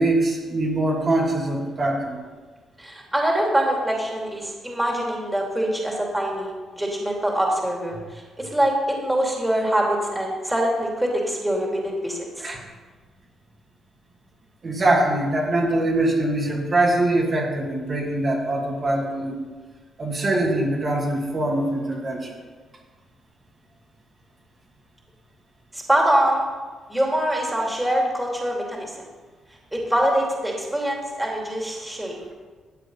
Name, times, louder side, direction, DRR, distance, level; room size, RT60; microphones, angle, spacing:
voice 1, 0.0-2.2 12.4-12.6 14.6-19.4 20.0-22.4, right 1 dB, 40° right, -3 dB, 2.5 m, -23 dB
voice 2, 2.8-12.5 25.7-26.4 26.9-29.0 29.7-32.3, right 1 dB, 10° right, -1 dB, 2.8 m, -24 dB
12.5 x 8.0 x 5.5 m, 1.4 s
cardioid pair, 90°, 0 cm